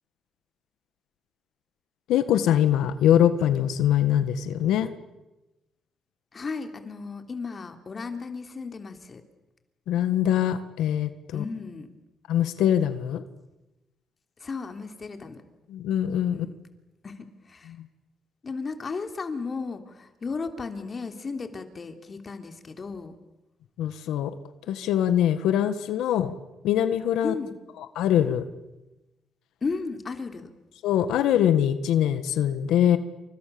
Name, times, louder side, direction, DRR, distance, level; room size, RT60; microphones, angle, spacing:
voice 1, 2.1-4.9 9.9-11.4 12.3-13.2 15.7-16.5 23.8-24.3 24.7-26.3 26.6-27.3 27.8-28.4 30.8-33.0, left 10 dB, 90° left, 11 dB, 1.6 m, -23 dB
voice 2, 6.3-9.2 11.3-11.9 14.4-15.4 16.3-16.5 17.0-17.7 18.4-23.1 27.2-27.5 29.6-30.5, left 4 dB, 35° left, 6 dB, 3.2 m, -34 dB
29.0 x 25.5 x 7.0 m, 1.0 s
cardioid pair, 90°, 0 cm